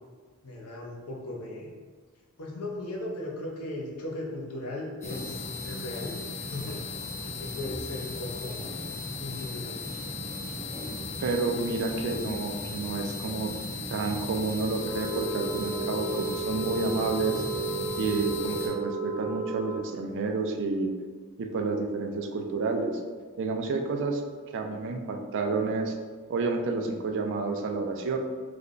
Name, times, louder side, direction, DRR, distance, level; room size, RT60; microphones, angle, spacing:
voice 1, 0.4-1.7 2.4-6.1 6.5-6.8 7.2-8.7 9.2-9.8, left 2 dB, 70° left, -2 dB, 0.7 m, -37 dB
sound 1, 5.0-18.7, left 3 dB, 35° left, 1.1 m, -36 dB
voice 2, 11.2-13.5 13.9-17.4 18.0-20.9 21.4-23.0 23.4-24.2 24.5-26.0 26.3-28.2, right 3 dB, 55° right, 4 dB, 0.4 m, -30 dB
sound 2, 14.8-19.8, right 4 dB, 85° right, 0.7 m, -33 dB
3.3 x 2.2 x 3.7 m, 1.6 s
head